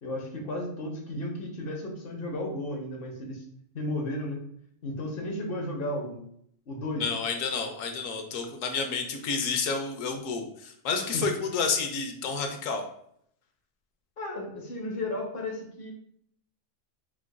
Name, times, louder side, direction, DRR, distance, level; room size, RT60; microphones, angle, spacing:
voice 1, 0.0-3.4 3.7-4.4 4.8-6.2 6.7-7.1 11.1-11.2 14.2-15.9, left 1 dB, 55° left, 1 dB, 0.8 m, -34 dB
voice 2, 7.0-12.8, left 5 dB, 85° left, 5 dB, 1.0 m, -30 dB
4.6 x 2.4 x 2.2 m, 0.69 s
omnidirectional pair, 1.3 m